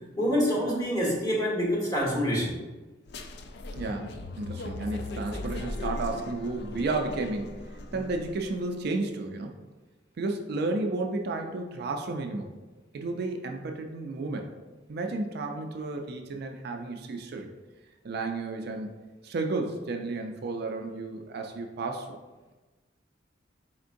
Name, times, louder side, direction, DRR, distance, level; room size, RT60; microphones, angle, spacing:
voice 1, 0.2-2.6, equal, 20° left, -4 dB, 1.3 m, -26 dB
sound 1, 3.1-8.6, left 2 dB, 60° left, 0.4 m, -38 dB
voice 2, 3.8-9.5 10.2-12.5 12.9-14.5 14.9-17.5 18.0-18.9 19.2-22.2, right 3 dB, 60° right, 4 dB, 0.4 m, -32 dB
4.4 x 3.6 x 2.5 m, 1.2 s
head